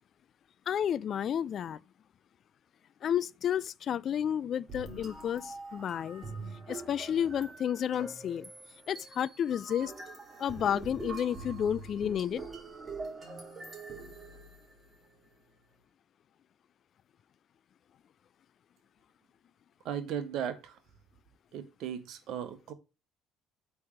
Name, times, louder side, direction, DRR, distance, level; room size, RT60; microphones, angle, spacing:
voice 1, 0.7-1.8 3.0-6.2 6.7-8.5 8.9-9.9 10.4-12.4, left 9 dB, 45° left, 0.3 m, -31 dB
sound 1, 4.7-15.0, right 3 dB, 25° right, 3.0 m, -44 dB
voice 2, 19.8-20.7 21.5-22.7, right 9 dB, 55° right, 1.2 m, -36 dB
8.4 x 3.4 x 6.4 m
figure-of-eight pair, 55°, 0 cm